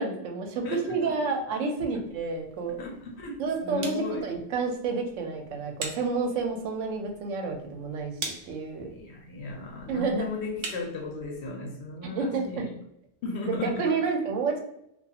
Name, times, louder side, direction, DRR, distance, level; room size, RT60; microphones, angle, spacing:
voice 1, 0.0-2.8 3.4-8.1 8.5-8.9 9.9-10.3 12.0-12.6 13.6-14.6, right 4 dB, 80° right, 2 dB, 0.9 m, -29 dB
voice 2, 0.6-1.1 2.8-4.3 8.9-12.7 13.2-14.2, left 3 dB, 65° left, 1 dB, 0.8 m, -36 dB
sound 1, 1.8-11.5, right 3 dB, 55° right, 0.6 m, -44 dB
2.4 x 2.3 x 2.7 m, 0.81 s
omnidirectional pair, 1.3 m